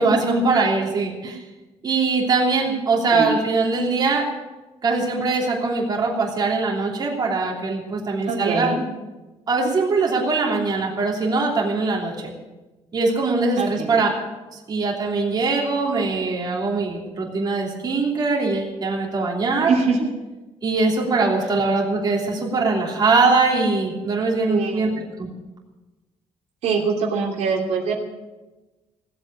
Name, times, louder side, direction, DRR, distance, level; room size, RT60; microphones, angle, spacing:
voice 1, 0.0-1.4 1.8-4.3 4.8-8.7 9.5-12.3 12.9-14.1 14.5-19.8 20.6-24.9 25.2-25.3, right 3 dB, 35° right, -1 dB, 3.1 m, -22 dB
voice 2, 8.3-8.8 13.6-14.1 19.7-20.1 24.5-25.0 26.6-27.9, right 4 dB, 80° right, -1 dB, 2.9 m, -23 dB
17.0 x 8.2 x 8.8 m, 1.1 s
cardioid pair, 130°, 11 cm